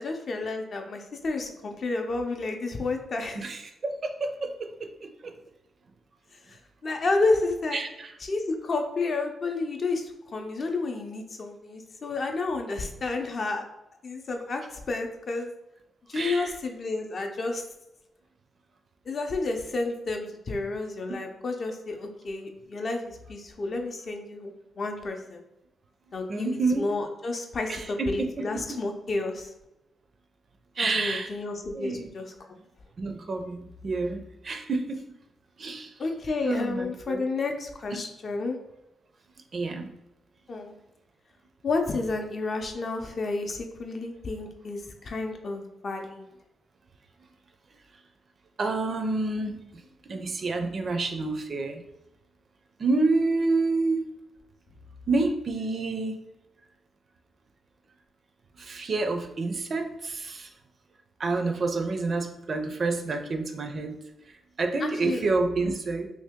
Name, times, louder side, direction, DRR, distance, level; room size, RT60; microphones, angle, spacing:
voice 1, 0.0-3.4 6.5-7.8 8.2-10.1 10.3-13.7 14.0-15.5 16.1-17.6 19.1-25.4 26.1-29.5 30.8-32.3 36.0-38.6 40.5-40.7 41.6-46.2 64.8-65.2, left 3 dB, 45° left, 3 dB, 0.5 m, -31 dB
voice 2, 3.4-4.9 5.2-5.3 7.7-8.1 16.1-16.5 26.3-26.9 27.7-28.1 30.8-31.3 31.7-32.1 33.0-35.0 35.6-35.9 36.4-37.2 39.5-39.9 48.6-51.8 52.8-54.0 55.1-56.2 58.6-60.5 61.2-64.0 64.6-66.1, right 3 dB, 40° right, 6 dB, 0.4 m, -28 dB
2.9 x 2.7 x 3.5 m, 0.90 s
cardioid pair, 125°, 0 cm